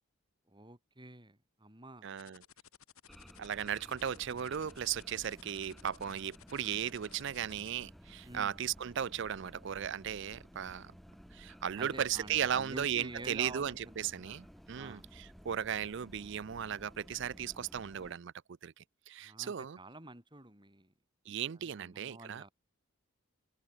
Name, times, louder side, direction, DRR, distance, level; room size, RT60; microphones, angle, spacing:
voice 1, 0.5-2.1 8.2-8.6 11.7-15.1 19.2-20.9 21.5-22.5, right 2 dB, 20° right, 4.5 m, -49 dB
voice 2, 2.0-2.4 3.4-10.9 11.3-18.3 18.6-19.8 21.3-22.5, right 9 dB, 55° right, 0.4 m, -36 dB
sound 1, 2.2-7.7, left 8 dB, 85° left, 4.6 m, -58 dB
sound 2, 3.1-18.1, equal, ahead, 1.6 m, -55 dB
head